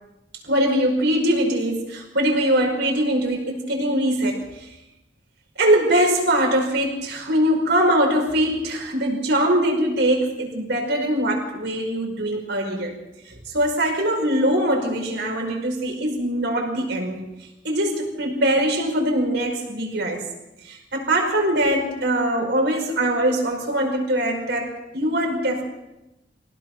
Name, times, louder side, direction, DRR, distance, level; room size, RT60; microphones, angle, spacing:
voice 1, 0.4-4.7 5.6-12.9 13.3-17.2 17.6-20.3 20.6-25.6, right 1 dB, 65° right, 2 dB, 5.4 m, -22 dB
24.5 x 17.5 x 6.1 m, 0.95 s
head